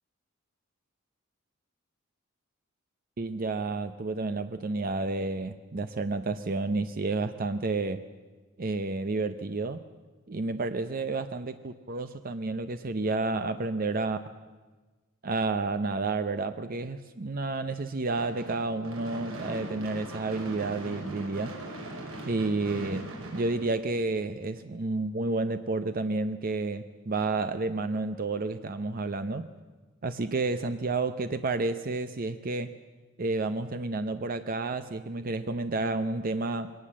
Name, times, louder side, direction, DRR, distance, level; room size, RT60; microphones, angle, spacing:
voice 1, 3.2-8.0 8.6-9.8 10.3-14.2 15.2-21.5 22.2-29.5 30.0-32.7 33.2-36.7, right 3 dB, 45° right, 10 dB, 0.7 m, -30 dB
Gunshot gunfire / Fireworks, 18.2-24.4, right 1 dB, 85° right, 4.9 m, -40 dB
22.0 x 18.5 x 7.5 m, 1.3 s
head